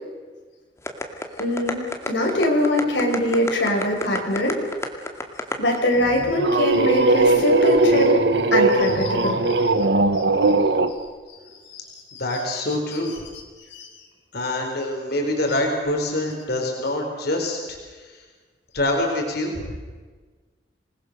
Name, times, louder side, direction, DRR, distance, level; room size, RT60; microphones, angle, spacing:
sound 1, 0.8-5.8, left 2 dB, 15° left, 2.2 m, -28 dB
voice 1, 1.4-1.8 2.1-4.6 5.6-8.2 8.5-9.8 10.1-10.5 11.7-12.6 12.9-13.4 13.7-13.9 15.5-15.6, left 1 dB, 80° left, 0 dB, 5.1 m, -23 dB
sound 2, 6.0-10.9, right 2 dB, 70° right, 1.5 m, -19 dB
voice 2, 12.2-13.1 14.3-18.0 18.7-19.7, left 1 dB, 60° left, 2 dB, 4.3 m, -25 dB
27.0 x 20.0 x 6.7 m, 1.4 s
head